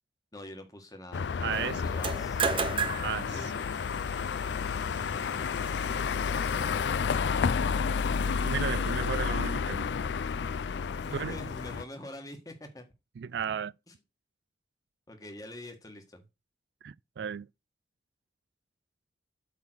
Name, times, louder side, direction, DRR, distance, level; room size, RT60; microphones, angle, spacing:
voice 1, 0.3-2.8 3.2-3.6 11.0-12.8 13.9-14.0 15.1-16.2, left 1 dB, 20° left, 1.5 m, -45 dB
sound 1, 1.1-11.8, left 6 dB, 75° left, 0.4 m, -30 dB
voice 2, 1.4-2.0 3.0-3.5 8.4-9.8 11.1-11.4 13.2-13.7 16.8-17.5, right 7 dB, 65° right, 0.3 m, -34 dB
sound 2, 1.9-6.7, right 5 dB, 30° right, 0.6 m, -36 dB
8.3 x 3.7 x 6.2 m
head